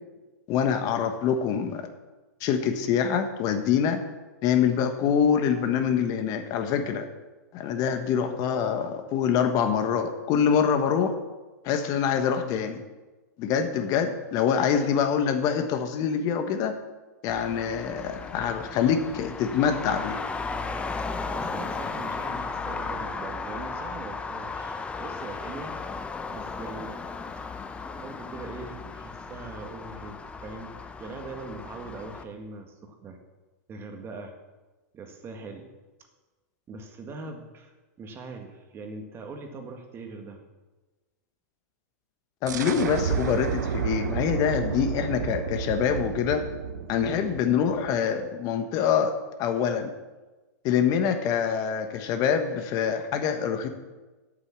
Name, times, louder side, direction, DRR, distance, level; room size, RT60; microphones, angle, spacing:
voice 1, 0.5-1.9 2.4-4.0 4.4-7.1 7.5-11.1 11.6-12.8 13.4-16.7 17.2-20.2 42.4-46.4 46.9-49.1 49.4-49.9 50.6-53.7, left 7 dB, 40° left, 7 dB, 1.2 m, -25 dB
Traffic noise roadway noise, 17.3-32.2, left 4 dB, 10° left, 0.7 m, -35 dB
voice 2, 21.3-25.8 26.3-27.0 27.9-33.2 33.7-34.3 34.9-35.7 36.7-40.4, right 3 dB, 25° right, 5 dB, 1.7 m, -41 dB
sound 1, 42.5-48.0, right 7 dB, 80° right, 1.1 m, -31 dB
8.7 x 8.3 x 7.4 m, 1.2 s
hypercardioid pair, 130°, 9 cm